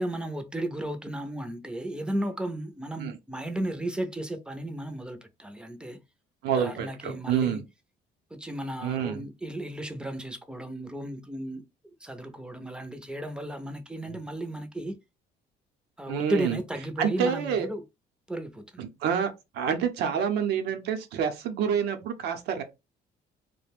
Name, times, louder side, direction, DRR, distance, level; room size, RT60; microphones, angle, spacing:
voice 1, 0.0-6.0 6.5-7.6 8.3-11.6 12.0-15.0 16.0-17.8 18.3-18.9, right 1 dB, 5° right, 0.5 m, -34 dB
voice 2, 6.4-7.6 8.8-9.3 16.1-16.6 17.0-17.7 18.8-22.6, right 7 dB, 80° right, 0.7 m, -28 dB
2.4 x 2.1 x 3.4 m
cardioid pair, 110°, 17 cm